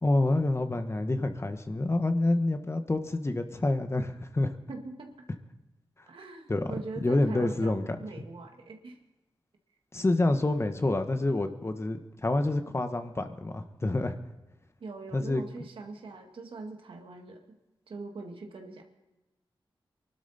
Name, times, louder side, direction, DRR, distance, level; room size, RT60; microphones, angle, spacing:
voice 1, 0.0-4.6 6.5-6.7 7.0-7.8 9.9-14.2 15.1-15.4, left 2 dB, 30° left, 8 dB, 1.3 m, -27 dB
voice 2, 4.7-5.1 6.1-9.0 14.8-17.4 17.9-18.8, right 3 dB, 85° right, 3 dB, 1.9 m, -42 dB
24.0 x 12.0 x 4.2 m, 1.0 s
cardioid pair, 65°, 9 cm